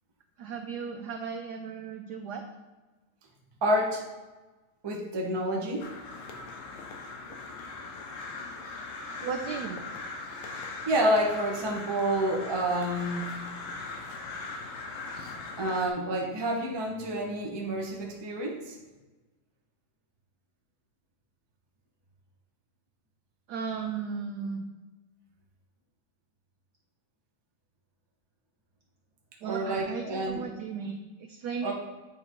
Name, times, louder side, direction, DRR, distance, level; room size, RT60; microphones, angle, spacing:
voice 1, 0.4-2.4 9.2-9.8 15.1-15.3 23.5-24.6 29.4-31.7, right 6 dB, 85° right, 4 dB, 0.9 m, -36 dB
voice 2, 3.6-4.0 4.8-5.9 10.5-13.3 15.6-18.8 29.4-30.4 31.6-31.7, right 1 dB, 35° right, -1 dB, 0.4 m, -29 dB
Crow, 5.8-15.9, left 3 dB, 90° left, 1.9 m, -40 dB
8.8 x 3.6 x 4.5 m, 1.2 s
omnidirectional pair, 2.4 m